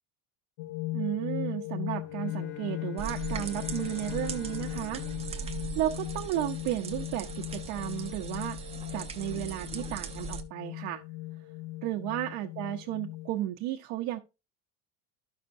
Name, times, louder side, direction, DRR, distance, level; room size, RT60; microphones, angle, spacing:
sound 1, 0.6-13.4, left 17 dB, 85° left, 0.7 m, -38 dB
voice 1, 0.9-5.0 5.8-8.6 8.9-11.0 11.8-14.2, right 13 dB, 70° right, 0.8 m, -33 dB
Bowed string instrument, 2.0-6.6, left 12 dB, 45° left, 0.7 m, -47 dB
sound 2, 3.0-10.4, right 6 dB, 20° right, 0.6 m, -40 dB
13.0 x 5.8 x 2.5 m
cardioid pair, 160°, 33 cm